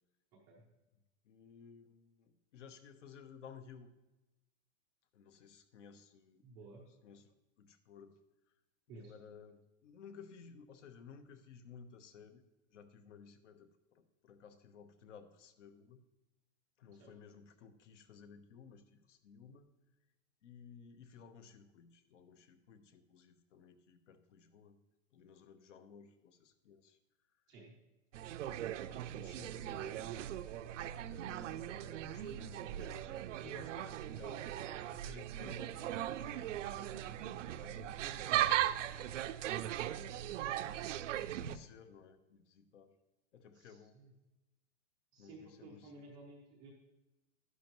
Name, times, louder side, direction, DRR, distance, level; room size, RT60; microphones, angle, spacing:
voice 1, 1.2-3.9 5.1-6.4 7.0-8.2 8.5-8.6 9.0-12.4 12.7-16.0 16.8-19.7 20.4-24.8 25.1-27.0 28.8-30.1 31.0-39.4 39.7-40.4 41.4-43.0 43.3-44.0 45.2-46.1, left 6 dB, 65° left, 10 dB, 1.1 m, -57 dB
voice 2, 6.4-6.8 8.9-9.1 17.0-17.1 27.5-27.7 43.5-44.1 45.1-46.7, right 2 dB, 10° right, -3 dB, 0.4 m, -54 dB
sound 1, 28.1-41.6, right 12 dB, 70° right, 0.6 m, -38 dB
11.5 x 11.0 x 3.0 m, 1.0 s
supercardioid pair, 175°, 39 cm